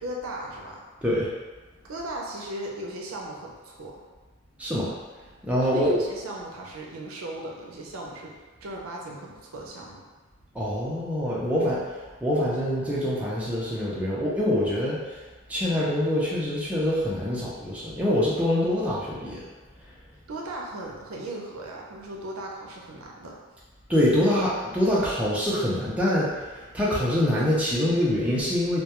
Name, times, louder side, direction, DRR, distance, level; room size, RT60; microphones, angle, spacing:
voice 1, 0.0-0.8 1.9-3.9 5.6-10.0 20.3-23.4, right 1 dB, 80° right, -2 dB, 0.5 m, -37 dB
voice 2, 4.6-4.9 5.4-6.0 10.5-11.8 12.2-15.2 15.5-19.4 23.9-28.8, left 1 dB, 5° right, -8 dB, 0.4 m, -25 dB
2.2 x 2.2 x 2.9 m, 1.3 s
head